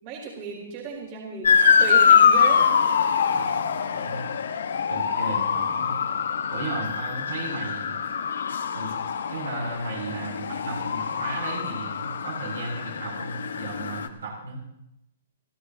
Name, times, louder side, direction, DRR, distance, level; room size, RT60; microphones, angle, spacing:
voice 1, 0.0-2.8, right 4 dB, 40° right, -2 dB, 4.4 m, -34 dB
Motor vehicle (road) / Siren, 1.4-14.1, left 7 dB, 85° left, 1.5 m, -24 dB
voice 2, 3.3-4.2 4.9-5.9 6.5-7.9 8.7-9.0 9.3-14.6, right 3 dB, 90° right, -2 dB, 7.9 m, -35 dB
29.5 x 13.5 x 3.0 m, 0.83 s
hypercardioid pair, 150°, 0 cm